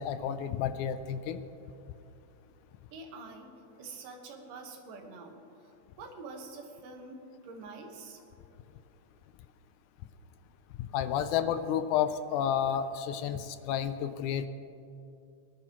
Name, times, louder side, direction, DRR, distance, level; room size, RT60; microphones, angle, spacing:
voice 1, 0.0-1.4 10.9-14.5, left 9 dB, 80° left, 11 dB, 1.9 m, -31 dB
voice 2, 2.9-8.2, right 3 dB, 90° right, 3 dB, 2.9 m, -46 dB
23.5 x 11.5 x 3.0 m, 2.7 s
omnidirectional pair, 3.7 m